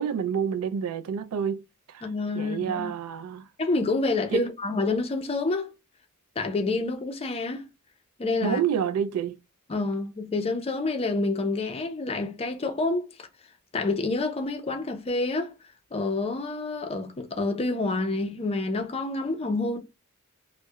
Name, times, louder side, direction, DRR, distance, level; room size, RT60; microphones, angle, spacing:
voice 1, 0.0-1.6 1.9-2.0 2.3-3.5 4.3-4.4 8.4-9.4, right 7 dB, 80° right, 0.3 m, -28 dB
voice 2, 2.0-2.9 3.6-5.7 6.4-7.7 8.2-8.6 9.7-13.1 13.7-15.5 15.9-19.8, left 3 dB, 30° left, 0.4 m, -28 dB
2.2 x 2.1 x 2.7 m
head